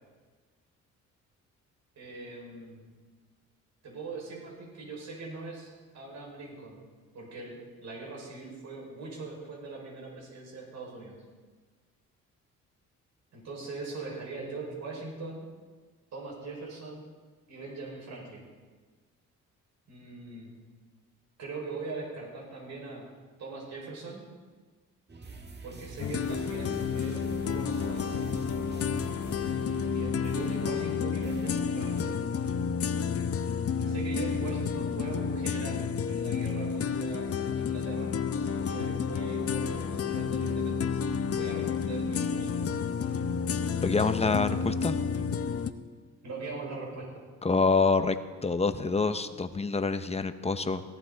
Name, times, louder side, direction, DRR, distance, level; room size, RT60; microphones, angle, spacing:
voice 1, 2.0-2.9 3.8-6.8 7.1-11.2 13.3-15.5 16.1-17.0 17.5-18.4 19.9-20.5 21.4-23.1 23.4-24.2 25.6-28.2 29.9-32.3 33.9-35.8 36.1-42.7 46.2-47.2, right 3 dB, 65° right, -2 dB, 5.5 m, -41 dB
sound 1, 25.1-32.1, right 2 dB, 35° right, 1.6 m, -46 dB
sound 2, 26.0-45.7, left 6 dB, 50° left, 0.9 m, -30 dB
voice 2, 43.8-45.0 47.4-48.2 48.4-50.8, left 4 dB, 20° left, 9 dB, 0.9 m, -26 dB
17.5 x 14.0 x 4.1 m, 1.4 s
cardioid pair, 90°, 30 cm